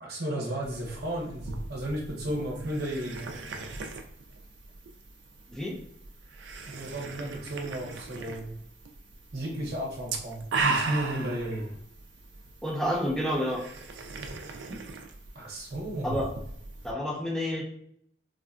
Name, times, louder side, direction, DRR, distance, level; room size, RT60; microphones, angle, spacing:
voice 1, 0.0-3.5 6.7-8.5 9.3-11.7 14.7-14.8 15.3-16.3, right 1 dB, 55° right, -3 dB, 0.8 m, -34 dB
sound 1, 0.6-16.9, right 4 dB, 70° right, 0.4 m, -38 dB
voice 2, 12.6-13.6 16.0-16.3 16.8-17.6, equal, 5° left, -3 dB, 0.4 m, -29 dB
3.5 x 2.1 x 2.4 m, 0.69 s
head